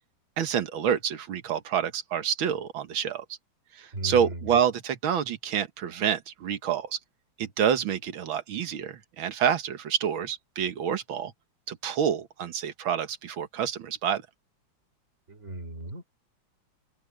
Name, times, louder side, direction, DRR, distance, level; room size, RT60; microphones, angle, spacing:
voice 1, 0.4-3.2 3.8-7.0 7.4-11.3 11.7-14.2, right 8 dB, 90° right, 2.1 m, -28 dB
voice 2, 3.9-4.5 15.3-16.0, right 1 dB, 35° right, 3.9 m, -36 dB
omnidirectional pair, 2.1 m